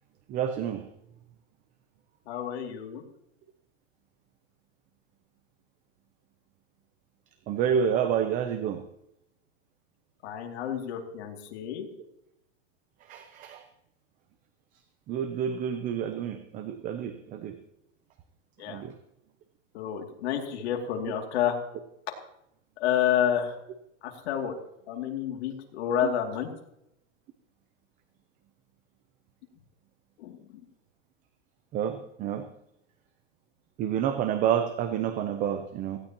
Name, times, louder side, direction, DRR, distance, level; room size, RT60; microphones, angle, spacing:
voice 1, 0.3-0.8 7.5-8.8 13.1-13.6 15.1-17.5 18.7-18.9 26.0-26.1 31.7-32.4 33.8-36.0, right 8 dB, 20° right, 9 dB, 0.7 m, -29 dB
voice 2, 2.3-3.0 10.2-11.9 18.6-18.8 19.7-21.6 22.8-23.5 24.0-24.5 24.9-26.5 30.2-30.4, left 9 dB, 55° left, 2 dB, 2.7 m, -29 dB
18.0 x 16.0 x 3.0 m, 0.81 s
hypercardioid pair, 150°, 39 cm